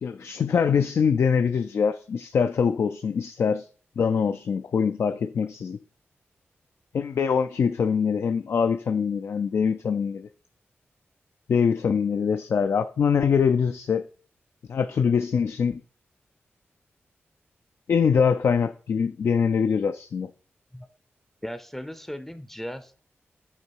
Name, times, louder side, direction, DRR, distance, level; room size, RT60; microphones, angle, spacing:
voice 1, 0.0-3.7 4.0-5.8 6.9-10.3 11.5-14.1 14.7-15.8 17.9-20.3, left 6 dB, 70° left, 0.3 m, -23 dB
voice 2, 21.4-23.0, equal, 5° left, 0.5 m, -37 dB
8.3 x 2.9 x 4.6 m
cardioid pair, 70°, 5 cm